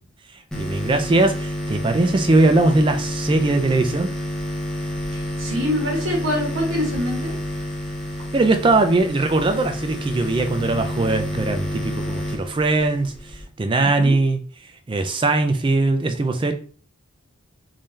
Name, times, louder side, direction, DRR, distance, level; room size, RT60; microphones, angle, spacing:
sound 1, 0.5-13.4, left 1 dB, 5° left, 0.7 m, -29 dB
voice 1, 0.5-4.1 8.3-14.4 14.9-16.5, right 2 dB, 25° right, 6 dB, 0.3 m, -20 dB
voice 2, 5.1-7.3 13.8-14.1, left 1 dB, 60° right, -3 dB, 1.4 m, -25 dB
3.7 x 2.7 x 3.1 m, 0.42 s
head